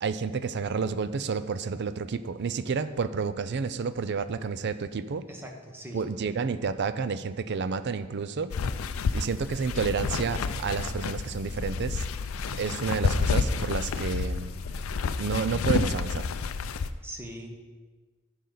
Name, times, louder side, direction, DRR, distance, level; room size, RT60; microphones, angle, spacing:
voice 1, 0.0-5.3 5.9-8.5 9.1-12.1 12.6-14.5 15.2-16.3, right 5 dB, 55° right, 13 dB, 0.5 m, -30 dB
voice 2, 5.3-6.0 17.0-17.5, equal, 10° right, 2 dB, 1.1 m, -41 dB
sound 1, 8.5-16.9, left 5 dB, 80° left, 0.4 m, -30 dB
sound 2, 10.3-15.8, left 1 dB, 30° left, 0.7 m, -44 dB
11.0 x 6.6 x 3.9 m, 1.4 s
head